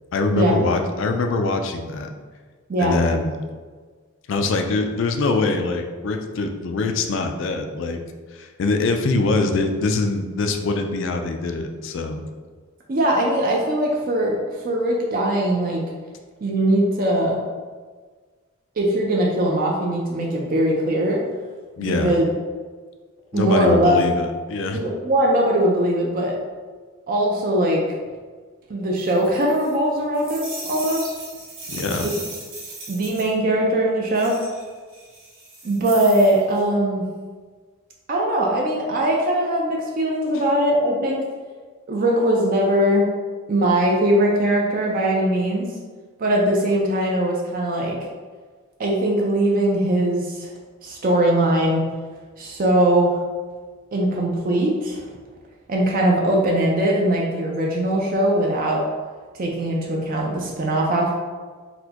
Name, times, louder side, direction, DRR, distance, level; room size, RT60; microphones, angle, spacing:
voice 1, 0.1-2.1 2.8-3.4 4.3-8.0 8.3-12.2 21.8-22.1 23.3-24.8 31.7-32.1, left 3 dB, 60° left, 5 dB, 0.3 m, -23 dB
voice 2, 12.9-14.3 14.6-15.8 16.4-17.4 18.8-21.2 21.8-22.2 23.3-24.0 24.7-26.4 27.1-27.8 28.7-31.1 32.0-32.1 32.9-34.4 35.6-37.1 38.1-41.3 41.9-43.1 43.5-45.7 46.2-48.0 48.8-50.5 50.8-51.8 52.4-53.2 53.9-55.0 55.7-58.8 59.3-61.1, right 1 dB, 40° right, -1 dB, 0.4 m, -20 dB
sound 1, 29.0-33.3 34.1-36.6, right 2 dB, 65° right, 1.2 m, -37 dB
4.1 x 2.2 x 2.8 m, 1.5 s
head